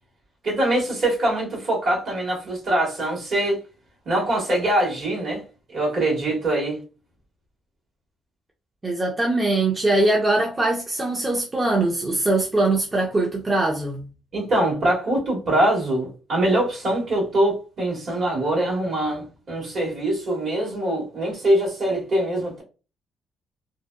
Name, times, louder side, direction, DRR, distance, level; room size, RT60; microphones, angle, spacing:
voice 1, 0.4-3.6 4.0-5.4 5.7-6.8 14.3-22.6, right 1 dB, 60° right, 1.4 m, -23 dB
voice 2, 8.8-14.0, right 2 dB, 25° right, 0.5 m, -22 dB
2.6 x 2.2 x 2.2 m
cardioid pair, 90°, 0 cm